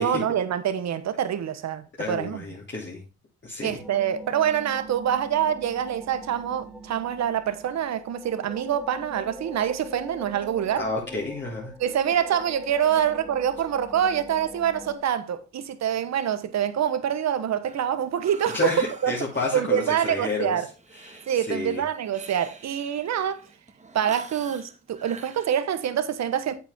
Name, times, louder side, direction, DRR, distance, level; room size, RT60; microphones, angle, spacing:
voice 1, 0.0-2.4 3.6-10.8 11.8-19.1 19.5-20.7 21.3-23.4 23.9-26.6, right 9 dB, 60° right, 1.2 m, -26 dB
voice 2, 2.0-3.0 3.4-3.8 10.7-11.7 12.9-13.0 18.5-20.6 21.0-21.8, left 3 dB, 35° left, 3.0 m, -30 dB
sound 1, 3.6-15.0, right 1 dB, ahead, 1.8 m, -43 dB
Breathing, 17.7-25.5, right 4 dB, 25° right, 1.7 m, -46 dB
8.4 x 8.1 x 3.6 m
cardioid pair, 90°, 30 cm